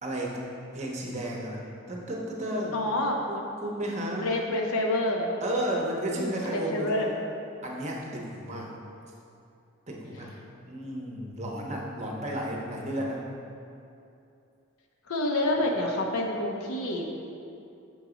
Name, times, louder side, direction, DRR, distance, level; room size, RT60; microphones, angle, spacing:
voice 1, 0.0-0.4 0.7-1.6 1.9-2.9 3.3-4.5 5.4-7.1 7.6-8.7 9.9-10.3 10.6-13.2, right 1 dB, 30° right, -2 dB, 0.7 m, -33 dB
voice 2, 2.7-3.2 4.2-5.3 6.2-7.1 15.1-17.2, left 1 dB, 85° left, 1 dB, 0.8 m, -28 dB
6.3 x 3.9 x 4.9 m, 2.7 s
head